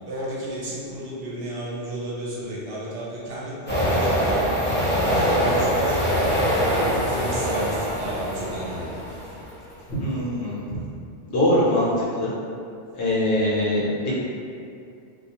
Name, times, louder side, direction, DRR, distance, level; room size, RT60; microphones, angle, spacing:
voice 1, 0.0-4.5 5.1-6.1 6.5-9.0, right 1 dB, 65° right, -7 dB, 0.8 m, -32 dB
sound 1, 3.7-9.4, equal, 15° left, 0.5 m, -23 dB
voice 2, 9.9-10.8 11.3-12.3 12.9-14.1, left 1 dB, 70° left, -7 dB, 1.0 m, -23 dB
2.3 x 2.3 x 2.8 m, 2.4 s
omnidirectional pair, 1.2 m